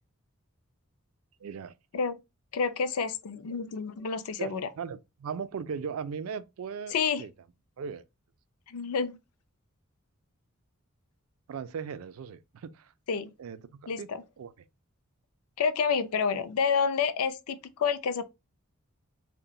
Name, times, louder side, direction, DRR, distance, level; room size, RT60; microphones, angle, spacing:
voice 1, 1.4-1.7 4.4-7.3 7.8-8.0 11.5-12.9 13.4-14.1 14.4-14.5, right 6 dB, 70° right, 0.4 m, -38 dB
voice 2, 2.5-4.7 6.9-7.2 8.7-9.2 13.1-13.3 13.9-14.2 15.6-18.2, left 6 dB, 90° left, 0.4 m, -29 dB
3.8 x 2.2 x 2.3 m
head